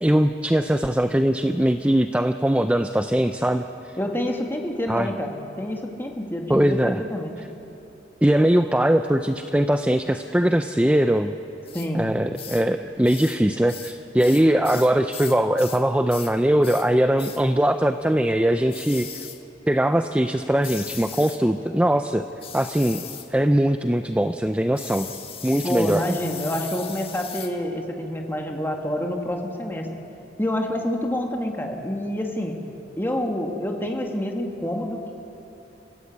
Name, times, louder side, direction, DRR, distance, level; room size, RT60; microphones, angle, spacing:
voice 1, 0.0-3.9 4.9-5.1 6.5-7.0 8.2-11.3 11.9-19.1 19.7-22.2 22.5-23.0 23.3-25.1 25.4-26.0, right 1 dB, 5° right, 8 dB, 0.5 m, -21 dB
voice 2, 4.0-6.8 7.1-7.3 11.7-12.1 25.6-29.9 30.4-32.6 33.0-35.1, left 1 dB, 10° left, 2 dB, 2.1 m, -27 dB
sound 1, 11.7-11.9 12.3-12.7 13.0-13.4 13.7-15.8 16.1-16.3 16.6-16.9 17.2-17.4 18.7-19.4 20.6-21.4 22.4-23.3 24.8-27.5, left 8 dB, 30° left, 1.4 m, -38 dB
29.5 x 15.0 x 8.6 m, 3.0 s
head